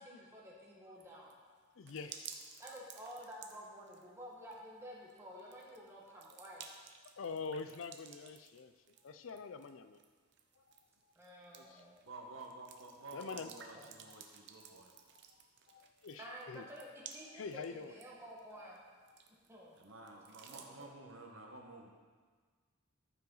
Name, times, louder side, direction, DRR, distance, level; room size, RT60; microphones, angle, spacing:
voice 1, 0.0-1.3 2.6-6.7 11.2-12.1 13.7-13.9 16.2-16.9 17.1-18.8 19.5-19.7 20.5-21.0, equal, 15° right, -5 dB, 1.7 m, -51 dB
sound 1, 1.0-20.9, right 7 dB, 55° right, 0.7 m, -56 dB
voice 2, 1.7-2.4 2.7-2.8 7.2-8.7 9.0-10.0 10.6-10.7 11.5-11.8 13.1-13.5 15.1-15.4 15.7-16.7 17.3-18.0 19.1-19.2, left 5 dB, 70° left, 11 dB, 0.4 m, -45 dB
voice 3, 12.0-14.9 19.8-21.9, right 2 dB, 75° right, 1 dB, 1.3 m, -51 dB
14.0 x 5.8 x 3.9 m, 1.5 s
head